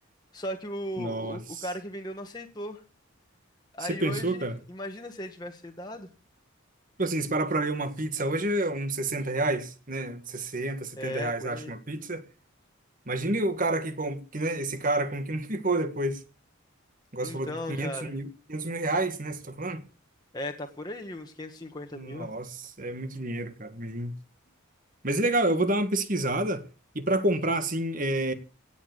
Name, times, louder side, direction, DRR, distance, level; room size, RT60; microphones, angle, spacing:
voice 1, 0.3-2.8 3.7-6.1 11.0-11.7 17.2-18.1 20.3-22.3, left 1 dB, 20° left, 1.4 m, -37 dB
voice 2, 1.0-1.6 3.8-4.6 7.0-12.3 13.1-16.2 17.1-19.8 21.9-24.1 25.0-26.6 26.9-28.3, right 2 dB, 40° right, 1.7 m, -29 dB
17.5 x 7.2 x 8.1 m
head